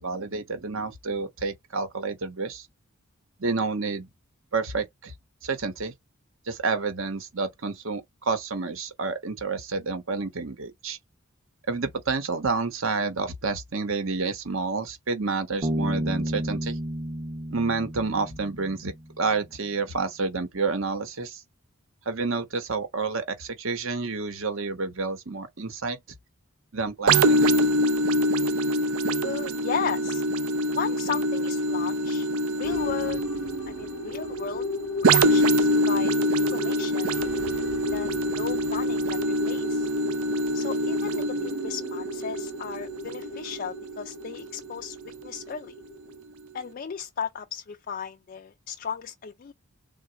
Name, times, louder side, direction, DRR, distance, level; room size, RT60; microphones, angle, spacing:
voice 1, 0.0-2.7 3.4-4.1 4.5-5.1 5.4-5.9 6.5-11.0 11.7-16.8 17.5-21.4 22.1-26.0 26.7-27.7, right 4 dB, 65° right, 1.0 m, -29 dB
Bass guitar, 15.6-19.2, right 1 dB, 25° right, 0.7 m, -31 dB
sound 1, 27.1-44.6 45.1-45.3, right 1 dB, 85° right, 0.5 m, -25 dB
voice 2, 29.2-30.2 30.8-32.3 32.6-33.2 33.7-34.7 35.0-37.1 37.9-39.9 40.5-45.0 45.2-45.7 46.5-49.5, left 7 dB, 40° left, 0.3 m, -35 dB
sound 2, 32.6-46.2, left 4 dB, 75° left, 0.6 m, -37 dB
3.8 x 2.3 x 4.4 m
head